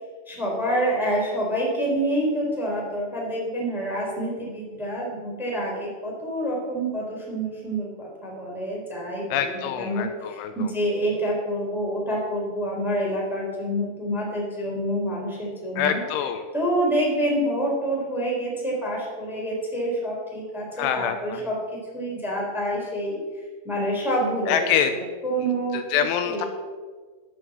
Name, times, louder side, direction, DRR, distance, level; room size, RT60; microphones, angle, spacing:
voice 1, 0.3-16.0 16.5-23.2 23.6-25.8 26.2-26.5, right 1 dB, ahead, -3 dB, 2.9 m, -27 dB
voice 2, 9.3-10.7 15.8-16.5 20.8-21.5 24.5-24.9 25.7-26.5, left 9 dB, 85° left, 7 dB, 3.1 m, -25 dB
14.0 x 6.7 x 7.5 m, 1.5 s
omnidirectional pair, 5.8 m